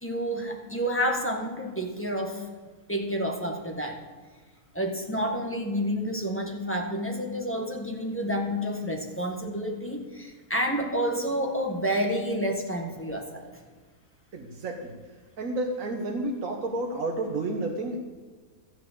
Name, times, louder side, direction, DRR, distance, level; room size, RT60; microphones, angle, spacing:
voice 1, 0.0-2.4 2.9-4.0 4.7-13.5, equal, 10° left, 1 dB, 1.4 m, -29 dB
voice 2, 14.3-14.9 15.4-18.0, right 2 dB, 65° right, 1 dB, 1.5 m, -30 dB
13.5 x 6.2 x 8.4 m, 1.4 s
omnidirectional pair, 1.5 m